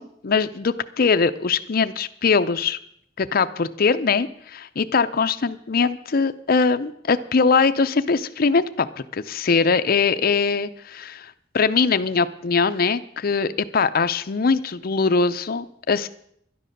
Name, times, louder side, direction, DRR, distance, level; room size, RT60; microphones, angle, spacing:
voice 1, 0.0-2.8 3.2-8.9 9.1-16.1, left 5 dB, 50° left, 11 dB, 0.5 m, -21 dB
11.5 x 9.9 x 6.6 m, 0.69 s
head